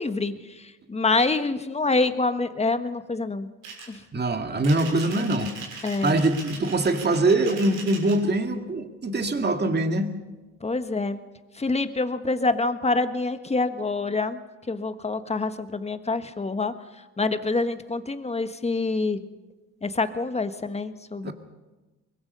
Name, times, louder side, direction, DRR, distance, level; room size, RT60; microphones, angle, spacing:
voice 1, 0.0-3.5 3.9-4.0 5.8-6.2 10.6-11.2 11.5-14.4 14.7-16.7 17.2-19.2 19.8-21.3, left 3 dB, 20° left, 10 dB, 1.4 m, -26 dB
sound 1, 3.6-4.0 4.6-8.2, right 4 dB, 85° right, 6.5 m, -39 dB
voice 2, 4.1-5.5 6.0-10.1 21.2-21.3, right 2 dB, 35° right, 5 dB, 2.3 m, -23 dB
23.5 x 21.5 x 5.5 m, 1.2 s
cardioid pair, 90°, 30 cm